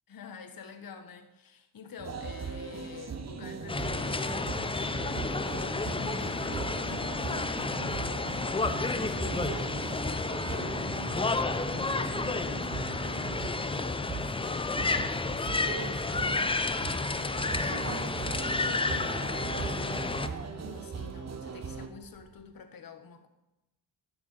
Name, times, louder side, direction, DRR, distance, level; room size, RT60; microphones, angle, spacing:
voice 1, 0.1-23.3, left 5 dB, 45° left, 1.4 m, -48 dB
sound 1, 2.0-21.9, right 6 dB, 35° right, 0.9 m, -39 dB
sound 2, 3.7-20.3, left 3 dB, 10° left, 0.5 m, -31 dB
sound 3, 16.3-22.4, right 1 dB, 80° right, 2.8 m, -57 dB
12.0 x 6.0 x 5.5 m
supercardioid pair, 65°, 46 cm